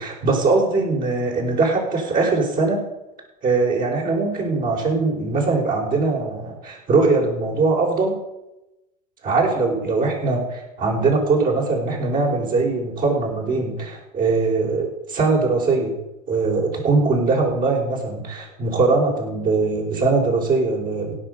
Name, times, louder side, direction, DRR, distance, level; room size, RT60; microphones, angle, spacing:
voice 1, 0.0-2.9 3.4-8.2 9.2-15.9 16.3-21.1, right 3 dB, 45° right, -1 dB, 5.0 m, -21 dB
16.5 x 6.2 x 6.7 m, 0.93 s
hypercardioid pair, 75°, 21 cm